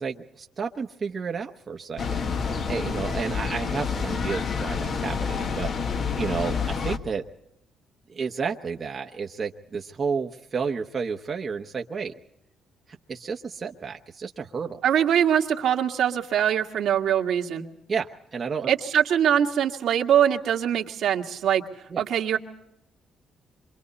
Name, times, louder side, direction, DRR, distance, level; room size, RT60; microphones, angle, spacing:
voice 1, 0.0-7.2 8.1-12.1 12.9-14.8 17.9-18.7 21.9-22.0, right 5 dB, 40° right, 2 dB, 1.0 m, -31 dB
sound 1, 2.0-7.0, left 5 dB, 55° left, 1.5 m, -28 dB
voice 2, 14.8-17.6 18.7-21.6 22.0-22.4, right 9 dB, 75° right, 2 dB, 1.8 m, -22 dB
27.5 x 24.5 x 4.2 m, 0.81 s
cardioid pair, 90°, 0 cm